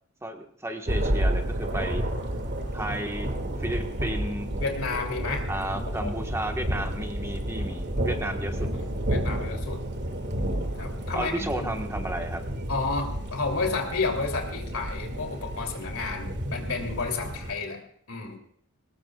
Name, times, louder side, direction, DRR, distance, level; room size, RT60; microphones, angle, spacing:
voice 1, 0.2-2.0 2.7-3.3 3.6-4.5 5.5-8.7 11.1-12.4, right 1 dB, 15° right, 4 dB, 1.4 m, -33 dB
Thunder, 0.9-17.5, right 1 dB, 55° right, 2.3 m, -31 dB
voice 2, 4.6-6.1 8.7-9.8 10.8-11.7 12.7-17.8 18.1-18.4, left 3 dB, 75° left, 3 dB, 3.1 m, -31 dB
22.0 x 19.0 x 2.4 m, 0.62 s
head